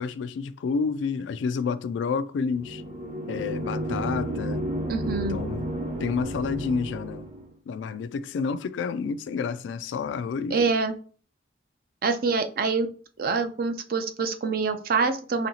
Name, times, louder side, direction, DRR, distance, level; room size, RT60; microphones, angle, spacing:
voice 1, 0.0-2.8 3.3-4.7 5.3-5.7 6.0-7.3 7.7-10.6, left 5 dB, 75° left, 0.3 m, -29 dB
sound 1, 2.5-7.5, right 1 dB, 35° right, 0.9 m, -32 dB
voice 2, 4.9-5.4 10.5-10.9 12.0-12.9 13.2-15.5, right 4 dB, 50° right, 0.5 m, -25 dB
4.2 x 2.8 x 2.7 m
head